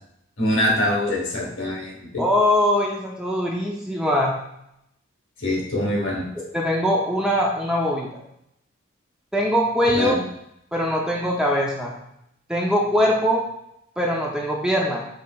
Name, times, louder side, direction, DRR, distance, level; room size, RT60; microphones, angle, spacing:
voice 1, 0.4-2.2 5.4-6.2 9.9-10.2, left 1 dB, 70° left, -2 dB, 1.4 m, -24 dB
voice 2, 2.2-4.3 6.3-8.1 9.3-10.2 10.7-11.9 12.5-13.4 14.0-15.0, equal, 5° right, -2 dB, 0.5 m, -22 dB
5.3 x 3.8 x 2.3 m, 0.79 s
head